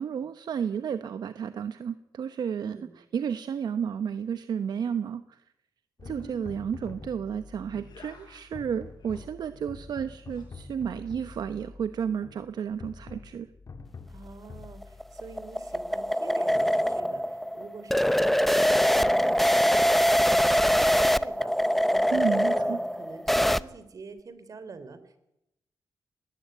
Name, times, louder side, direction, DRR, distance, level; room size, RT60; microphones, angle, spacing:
voice 1, 0.0-2.8 3.1-5.2 6.0-13.5 22.1-22.8, right 7 dB, 75° right, 11 dB, 1.0 m, -32 dB
voice 2, 2.6-3.0 6.0-6.6 14.1-20.4 20.7-21.5 21.9-25.2, right 4 dB, 55° right, 12 dB, 3.5 m, -46 dB
sound 1, 6.0-16.1, left 4 dB, 50° left, 2.5 m, -46 dB
sound 2, 7.6-8.5 8.9-9.3 10.2-10.5, left 5 dB, 80° left, 7.4 m, -53 dB
sound 3, 14.6-23.6, equal, 5° left, 0.8 m, -23 dB
19.5 x 18.5 x 9.2 m, 0.83 s
cardioid pair, 85°, 7 cm